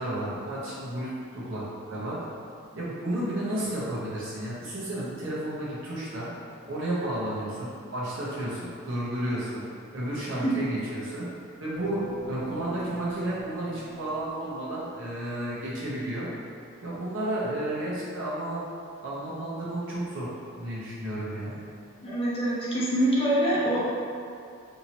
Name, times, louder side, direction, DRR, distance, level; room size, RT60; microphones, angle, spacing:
voice 1, 0.0-2.2 2.7-6.3 6.7-9.7 9.9-11.3 11.6-16.3 16.8-18.7 19.0-21.6, right 1 dB, 65° right, -8 dB, 0.8 m, -32 dB
sound 1, 11.7-14.8, right 3 dB, 5° left, 1.5 m, -43 dB
voice 2, 22.0-23.8, right 1 dB, 30° left, -7 dB, 0.6 m, -25 dB
2.8 x 2.7 x 2.8 m, 2.4 s
head